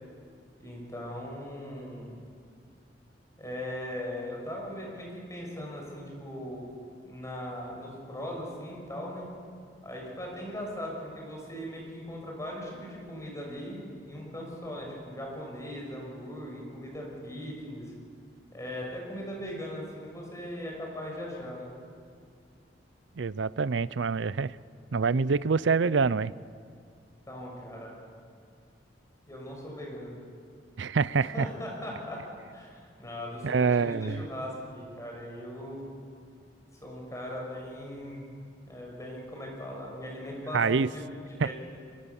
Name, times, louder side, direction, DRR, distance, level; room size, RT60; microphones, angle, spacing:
voice 1, 0.6-2.1 3.4-6.7 7.0-9.3 9.8-17.9 18.5-21.7 27.3-27.9 29.3-30.2 31.3-32.2 32.5-35.8 36.8-38.2 38.7-41.5, equal, 15° left, -1 dB, 6.2 m, -39 dB
voice 2, 23.2-24.6 24.9-26.3 30.8-31.5 33.4-34.2 40.5-40.9 41.4-41.5, right 5 dB, 85° right, 19 dB, 0.5 m, -26 dB
24.0 x 23.5 x 7.2 m, 2.3 s
head